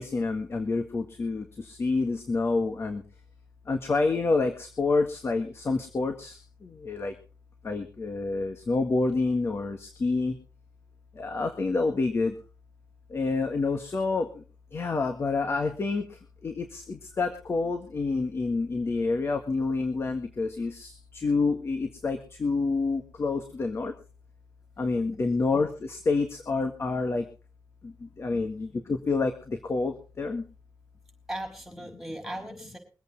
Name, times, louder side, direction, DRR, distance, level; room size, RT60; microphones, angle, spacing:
voice 1, 0.0-3.0 3.7-6.4 6.6-7.1 7.6-10.4 11.2-12.3 13.1-14.3 14.7-16.0 16.4-23.9 24.8-27.2 28.2-30.4, left 3 dB, 40° left, 5 dB, 1.7 m, -28 dB
voice 2, 31.3-32.8, right 1 dB, 5° right, 2 dB, 5.7 m, -38 dB
23.5 x 8.4 x 4.1 m, 0.36 s
wide cardioid pair, 125°, 7 cm